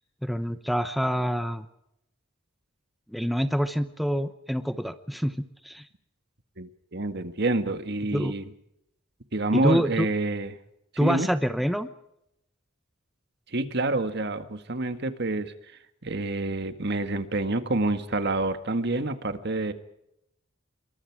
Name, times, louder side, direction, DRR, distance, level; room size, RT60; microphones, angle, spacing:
voice 1, 0.2-1.7 3.1-5.9 8.1-8.3 9.5-10.1 11.0-11.9, equal, ahead, 10 dB, 0.8 m, -26 dB
voice 2, 6.6-8.5 9.3-10.6 11.0-11.3 13.5-15.5 16.0-19.7, right 2 dB, 55° right, 9 dB, 1.8 m, -27 dB
27.0 x 23.5 x 4.8 m, 0.80 s
head